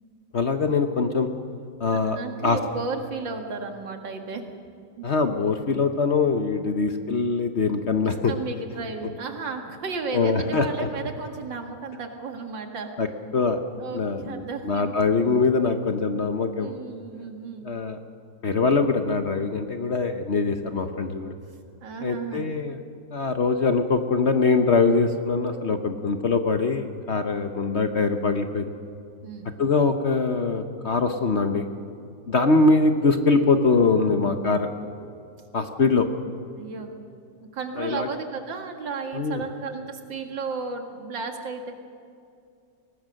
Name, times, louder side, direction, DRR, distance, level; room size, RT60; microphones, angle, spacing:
voice 1, 0.3-1.3 1.8-2.2 2.4-2.6 5.0-8.3 10.1-10.9 13.0-13.1 13.3-13.6 13.9-16.8 17.6-18.0 18.4-21.3 22.0-22.8 23.1-28.7 29.6-31.7 32.3-34.7 35.5-36.1 37.8-38.1 39.1-39.4, left 4 dB, 45° left, 7 dB, 1.0 m, -23 dB
voice 2, 2.1-4.4 5.0-5.1 6.7-6.8 8.0-12.9 13.8-14.9 16.6-17.7 21.8-22.5 29.2-29.5 34.1-34.5 36.6-36.9 37.4-41.7, right 4 dB, 85° right, 4 dB, 2.6 m, -33 dB
23.0 x 19.0 x 6.5 m, 2.5 s
omnidirectional pair, 2.0 m